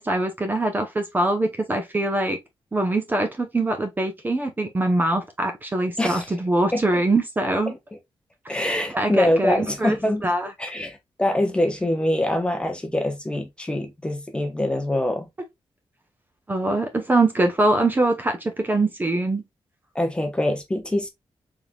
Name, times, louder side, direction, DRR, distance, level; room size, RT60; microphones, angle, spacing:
voice 1, 0.0-2.4 2.7-7.7 8.4-8.6 8.9-10.0 10.2-10.5 16.5-19.4, right 2 dB, 20° right, 0.8 m, -23 dB
voice 2, 6.0-6.3 6.7-7.0 7.7-7.8 8.5-10.3 10.6-15.3 19.9-21.1, left 1 dB, 10° left, 0.9 m, -24 dB
4.6 x 3.6 x 2.3 m
wide cardioid pair, 155°, 9 cm